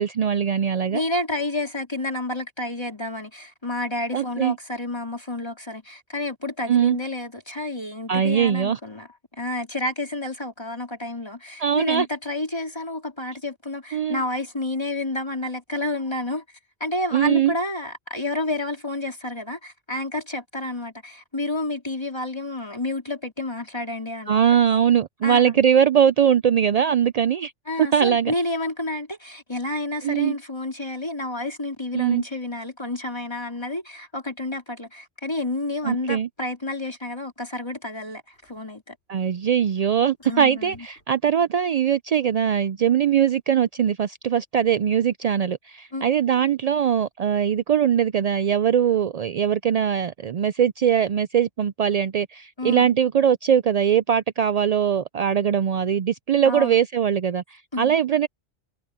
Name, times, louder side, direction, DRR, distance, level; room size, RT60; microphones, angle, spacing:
voice 1, 0.0-1.0 4.1-4.6 6.7-7.0 8.1-8.8 11.6-12.1 13.9-14.2 17.1-17.5 24.3-27.5 27.8-28.3 30.0-30.3 31.9-32.2 35.8-36.3 39.1-58.3, right 8 dB, 70° right, 0.3 m, -21 dB
voice 2, 0.9-9.1 9.3-16.4 16.8-24.5 25.2-25.6 27.7-39.0 40.2-40.9 45.9-46.0 52.6-52.9 56.4-56.8 57.7-57.9, left 2 dB, 20° left, 3.8 m, -30 dB
sound 1, 35.6-35.7 38.1-39.4 39.7-39.8 40.0-41.1, equal, 70° left, 5.9 m, -55 dB
omnidirectional pair, 1.2 m